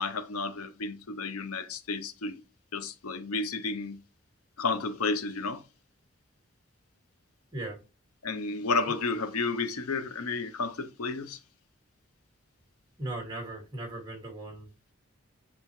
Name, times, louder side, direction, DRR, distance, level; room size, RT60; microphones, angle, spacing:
voice 1, 0.0-2.4 2.7-4.0 4.6-5.6 8.2-11.4, left 3 dB, 90° left, 0.7 m, -32 dB
voice 2, 13.0-14.7, right 2 dB, 20° right, 2.0 m, -38 dB
7.7 x 4.3 x 3.1 m
head